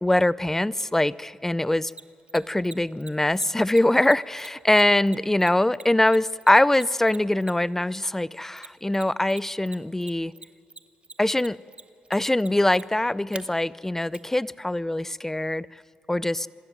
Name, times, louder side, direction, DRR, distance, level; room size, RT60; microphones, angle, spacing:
voice 1, 0.0-1.9 2.3-10.3 11.2-11.6 12.1-15.7 16.1-16.5, left 1 dB, 10° left, 21 dB, 0.6 m, -23 dB
Mechanisms, 0.8-0.9 1.9-7.8 8.6-9.4 9.7-13.4 14.1-14.2, right 4 dB, 35° right, 1.3 m, -43 dB
25.0 x 13.0 x 9.0 m, 2.4 s
supercardioid pair, 50°, 3 cm